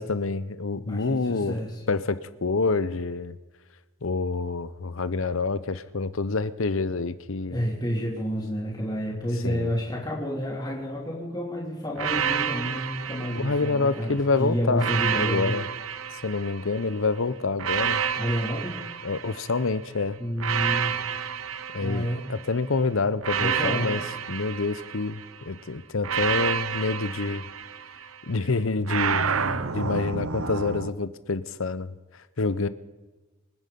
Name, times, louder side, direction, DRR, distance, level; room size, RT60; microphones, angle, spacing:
voice 1, 0.0-1.5 1.9-3.4 4.0-7.6 9.4-9.7 13.3-15.7 16.1-18.0 19.0-20.2 21.7-24.0 24.3-27.5 28.2-31.9 32.4-32.7, left 3 dB, 75° left, 15 dB, 0.8 m, -27 dB
voice 2, 0.8-1.8 7.5-15.5 18.1-18.8 20.2-20.9 21.8-22.3 23.4-24.0, equal, 20° left, -6 dB, 3.4 m, -29 dB
sound 1, 12.0-14.1 14.8-16.9 17.6-19.8 20.4-22.5 23.2-25.4 26.0-28.2 28.9-30.9, right 7 dB, 85° right, 0.8 m, -30 dB
27.0 x 9.8 x 5.4 m, 1.2 s
head